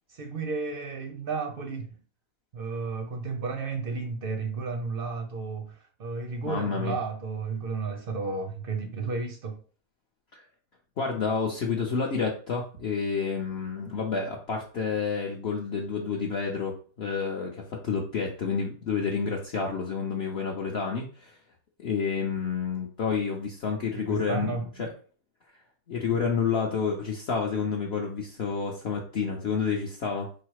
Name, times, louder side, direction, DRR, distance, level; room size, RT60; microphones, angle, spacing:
voice 1, 0.1-2.0 2.5-9.6 23.9-24.9, right 4 dB, 55° right, 0.6 m, -33 dB
voice 2, 6.4-7.0 10.3-10.4 11.0-21.4 21.8-24.5 24.8-24.9 25.9-30.3, left 5 dB, 55° left, 0.8 m, -29 dB
4.8 x 2.0 x 4.6 m
omnidirectional pair, 1.6 m